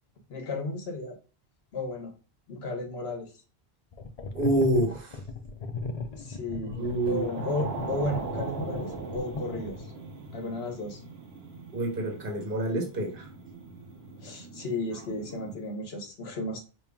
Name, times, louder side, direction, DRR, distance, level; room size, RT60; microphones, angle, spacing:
voice 1, 0.3-1.2 1.7-2.1 2.5-3.3 6.1-6.8 7.1-9.9 10.3-11.0 14.1-16.6, left 2 dB, 70° left, 4 dB, 1.2 m, -34 dB
sound 1, 3.9-10.0, left 3 dB, 45° left, 0.5 m, -37 dB
voice 2, 4.3-5.2 6.7-7.3 11.7-13.3, right 1 dB, 55° right, 2 dB, 1.3 m, -27 dB
sound 2, 6.9-15.6, right 3 dB, 75° right, 1.1 m, -40 dB
5.3 x 2.9 x 2.2 m, 0.34 s
omnidirectional pair, 1.1 m